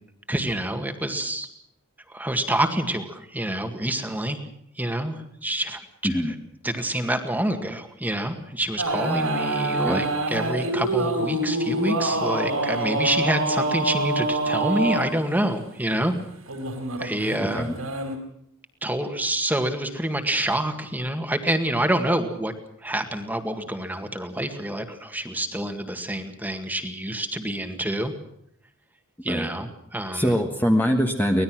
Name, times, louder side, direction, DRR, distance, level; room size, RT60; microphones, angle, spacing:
voice 1, 0.3-1.5 2.1-4.4 4.8-6.4 6.6-16.1 17.0-17.7 18.8-22.5 22.8-28.1 29.2-30.4, right 1 dB, 10° right, 6 dB, 1.9 m, -27 dB
sound 1, 8.8-15.0 16.5-18.2, right 2 dB, 85° right, 4.8 m, -26 dB
voice 2, 30.1-31.4, equal, 10° left, 2 dB, 1.5 m, -22 dB
24.5 x 19.0 x 6.2 m, 0.71 s
head